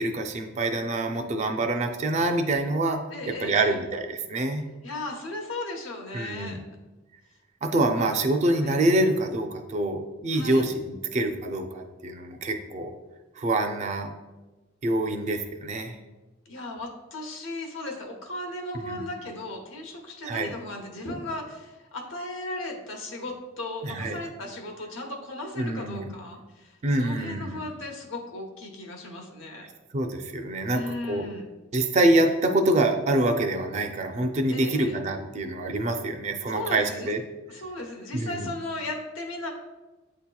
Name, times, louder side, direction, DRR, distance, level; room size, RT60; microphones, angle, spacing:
voice 1, 0.0-3.0 3.3-4.6 6.1-6.6 7.6-13.0 13.4-14.1 14.8-16.0 18.8-19.0 20.2-20.5 23.8-24.2 25.6-26.1 26.8-27.6 29.9-30.8 31.1-31.3 31.7-37.2 38.1-38.5, right 1 dB, 35° right, 5 dB, 0.4 m, -26 dB
voice 2, 3.1-3.8 4.8-6.6 7.7-8.1 8.6-8.7 10.3-10.7 16.5-29.7 30.7-31.5 34.5-35.0 36.5-37.1 37.5-39.5, left 2 dB, 70° left, 2 dB, 0.8 m, -36 dB
8.3 x 2.8 x 2.2 m, 1.1 s
head